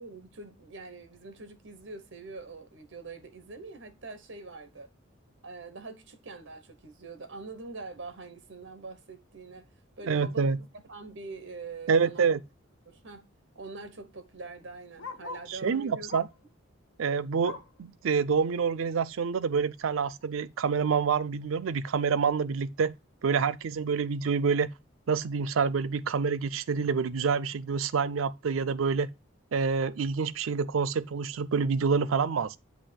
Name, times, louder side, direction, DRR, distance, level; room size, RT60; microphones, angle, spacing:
voice 1, 0.0-4.9 5.4-9.7 10.0-12.3 12.9-13.2 13.5-16.2, right 3 dB, 70° right, 1.0 m, -44 dB
voice 2, 10.1-10.6 11.9-12.4 15.5-16.3 17.0-22.9 23.2-24.7 25.1-29.1 29.5-32.6, right 5 dB, 90° right, 0.4 m, -27 dB
Bark, 12.7-15.6 16.0-16.5 16.8-17.8 18.3-18.4 18.8-18.9 19.6-19.7, left 3 dB, 75° left, 0.8 m, -45 dB
8.3 x 2.8 x 5.7 m
head